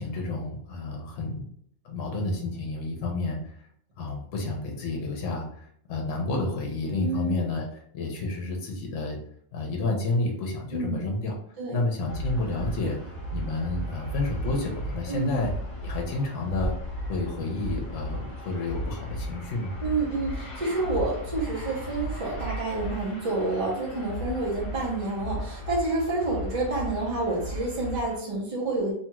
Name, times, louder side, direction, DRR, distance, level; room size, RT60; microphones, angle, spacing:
voice 1, 0.0-1.5 1.8-3.4 4.0-5.4 5.9-7.7 7.9-9.2 9.5-11.3 11.7-13.0 13.3-15.5 15.8-16.7 17.0-19.7, left 2 dB, 70° left, 0 dB, 1.0 m, -30 dB
voice 2, 7.0-7.3 10.7-11.0 11.6-11.8 15.1-15.3 19.8-28.9, right 2 dB, 35° right, -4 dB, 0.6 m, -29 dB
sound 1, 12.1-28.2, equal, 45° left, 1.4 m, -35 dB
2.8 x 2.3 x 2.9 m, 0.63 s
omnidirectional pair, 1.4 m